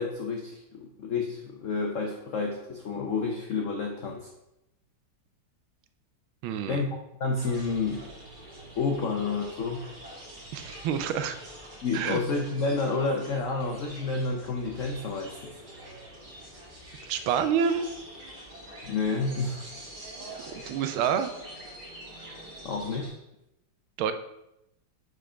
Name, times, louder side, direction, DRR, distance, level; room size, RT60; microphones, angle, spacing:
voice 1, 0.0-4.3 6.7-6.9 7.2-8.0 8.8-9.8 11.8-15.6 18.8-19.6 22.6-23.1, left 4 dB, 80° left, 1 dB, 0.7 m, -30 dB
voice 2, 6.4-6.8 10.5-11.4 11.9-12.2 17.1-17.8 20.5-21.3 24.0-24.1, right 7 dB, 85° right, 10 dB, 1.4 m, -27 dB
sound 1, 7.3-23.1, right 1 dB, 25° right, 1.5 m, -45 dB
5.0 x 4.6 x 4.9 m, 0.86 s
omnidirectional pair, 2.2 m